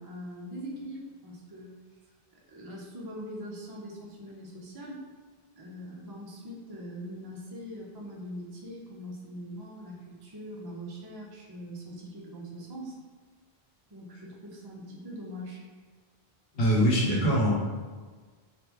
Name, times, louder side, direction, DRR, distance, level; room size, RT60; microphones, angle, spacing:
voice 1, 0.0-1.7 2.5-5.0 5.6-13.0 13.9-15.6, equal, 40° right, -3 dB, 0.3 m, -42 dB
voice 2, 16.5-17.6, equal, 70° left, -3 dB, 1.0 m, -23 dB
3.0 x 2.4 x 3.4 m, 1.4 s
omnidirectional pair, 1.0 m